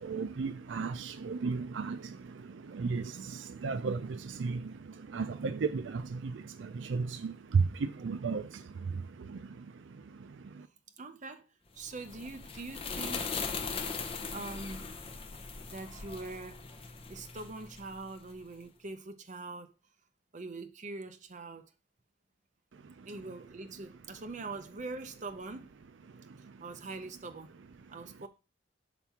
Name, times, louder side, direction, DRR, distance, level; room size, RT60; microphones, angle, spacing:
voice 1, 0.0-2.0 2.7-3.1 3.6-4.6 5.1-6.3 6.6-8.5, right 4 dB, 80° right, 0.4 m, -33 dB
voice 2, 11.0-11.5 11.7-13.4 13.9-14.9 15.7-16.6 17.1-19.7 20.3-21.7 23.0-25.7 26.6-27.6 27.9-28.3, right 3 dB, 40° right, 0.7 m, -43 dB
sound 1, 11.8-18.4, left 5 dB, 30° left, 0.7 m, -40 dB
5.9 x 3.5 x 5.7 m
head